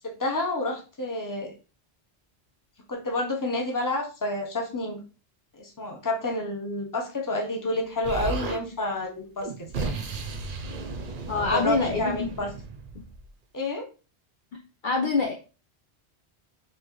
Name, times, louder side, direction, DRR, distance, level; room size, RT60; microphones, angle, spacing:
voice 1, 0.0-1.5 2.9-5.0 5.5-9.5 9.7-10.0 11.3-12.5 13.5-13.9, left 2 dB, 20° left, 1 dB, 0.8 m, -29 dB
Explosion, 8.0-8.6 9.4-13.3, right 4 dB, 55° right, 0.7 m, -34 dB
voice 2, 11.3-12.5 14.8-15.3, left 4 dB, 55° left, 1 dB, 0.7 m, -25 dB
4.4 x 2.8 x 3.0 m, 0.34 s
omnidirectional pair, 1.1 m